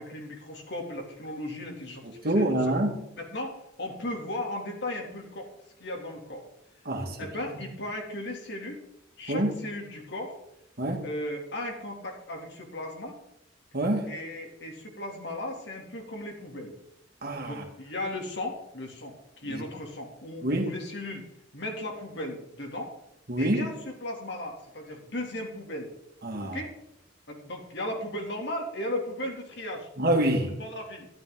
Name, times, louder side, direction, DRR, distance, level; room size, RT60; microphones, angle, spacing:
voice 1, 0.0-2.0 2.3-2.7 3.2-5.5 5.8-6.5 7.2-8.8 9.2-10.4 11.0-13.1 14.1-16.7 17.5-21.3 21.5-22.9 23.4-25.9 26.4-26.7 27.3-29.9 30.4-31.1, left 1 dB, 60° left, 1 dB, 2.8 m, -36 dB
voice 2, 2.2-2.9 6.9-7.2 7.5-7.6 9.3-9.5 10.8-11.0 13.7-14.1 17.2-17.6 19.5-19.6 20.4-20.7 23.3-23.7 26.2-26.6 30.0-30.5, right 1 dB, 55° right, 2 dB, 2.2 m, -26 dB
12.5 x 12.0 x 3.8 m, 0.81 s
head